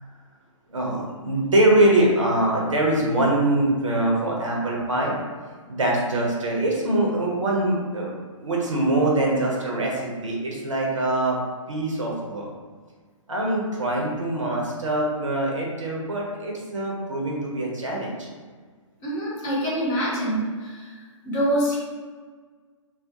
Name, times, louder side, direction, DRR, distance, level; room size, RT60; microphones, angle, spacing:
voice 1, 0.7-5.2 5.7-8.1 8.4-11.4 11.7-12.5 13.3-18.3, right 1 dB, 70° right, -2 dB, 0.7 m, -23 dB
voice 2, 19.0-20.9 21.2-21.8, equal, 25° left, -7 dB, 0.8 m, -25 dB
2.3 x 2.1 x 2.7 m, 1.5 s
figure-of-eight pair, 120°, 17 cm